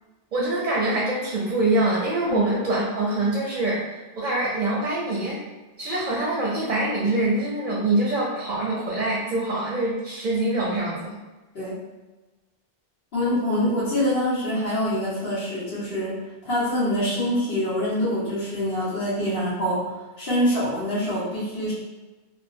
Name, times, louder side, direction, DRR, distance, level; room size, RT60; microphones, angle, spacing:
voice 1, 0.3-5.4 5.8-11.1, right 2 dB, 55° right, -5 dB, 0.6 m, -24 dB
voice 2, 13.1-16.2 16.4-21.7, left 1 dB, 70° left, -10 dB, 1.5 m, -25 dB
2.9 x 2.1 x 2.5 m, 1.2 s
omnidirectional pair, 1.1 m